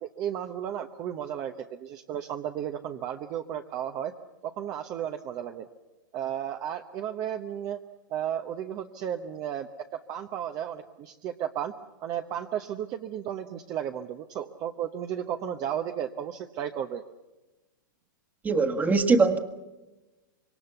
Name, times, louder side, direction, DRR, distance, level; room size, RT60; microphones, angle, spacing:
voice 1, 0.0-4.1 4.4-5.7 6.1-7.8 8.1-11.7 12.0-17.0, right 10 dB, 35° right, 6 dB, 1.0 m, -34 dB
voice 2, 18.4-19.4, right 4 dB, 15° right, 8 dB, 1.6 m, -22 dB
26.0 x 22.5 x 7.0 m, 1.1 s
hypercardioid pair, 125°, 11 cm